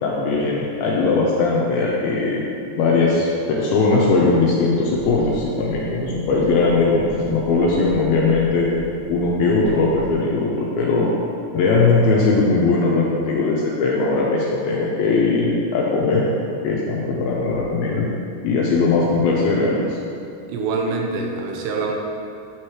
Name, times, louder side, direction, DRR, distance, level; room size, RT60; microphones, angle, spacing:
voice 1, 0.0-2.4 2.8-8.7 9.1-11.1 11.5-16.3 16.6-18.1 18.4-20.0, left 3 dB, 85° left, -4 dB, 2.2 m, -19 dB
sound 1, 4.9-10.2, right 2 dB, 70° right, 2.5 m, -38 dB
voice 2, 20.4-21.9, right 4 dB, 85° right, 0 dB, 2.9 m, -25 dB
8.5 x 4.8 x 3.0 m, 2.6 s
omnidirectional pair, 4.8 m